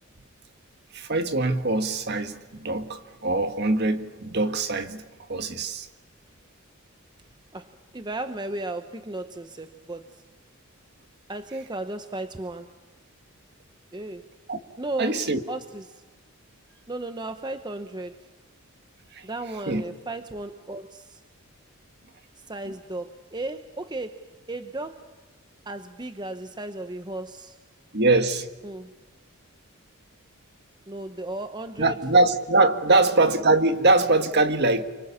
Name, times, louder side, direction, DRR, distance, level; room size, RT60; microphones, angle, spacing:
voice 1, 0.9-5.0 5.3-5.9 14.5-14.6 15.0-15.4 19.1-19.3 19.7-19.8 27.9-28.5 31.8-34.8, right 2 dB, 50° right, 1.8 m, -22 dB
voice 2, 7.5-10.2 11.3-12.7 13.9-14.3 14.8-15.2 15.5-16.0 16.9-18.2 19.2-21.2 22.5-25.1 25.7-27.6 28.6-28.9 30.9-31.9 32.9-33.0, right 2 dB, 20° right, 0.9 m, -35 dB
29.5 x 24.5 x 7.2 m
head